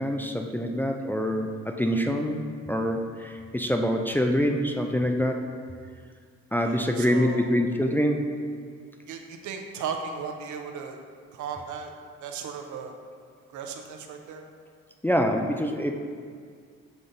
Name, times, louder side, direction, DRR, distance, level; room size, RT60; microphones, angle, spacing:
voice 1, 0.0-2.4 2.7-5.4 6.5-8.2 15.0-15.9, equal, 5° left, 3 dB, 0.4 m, -25 dB
voice 2, 6.6-7.5 9.1-11.0 11.3-11.9 12.2-12.9 13.5-14.5, right 6 dB, 75° right, 4 dB, 0.7 m, -36 dB
6.8 x 3.7 x 4.0 m, 2.1 s
cardioid pair, 90°, 30 cm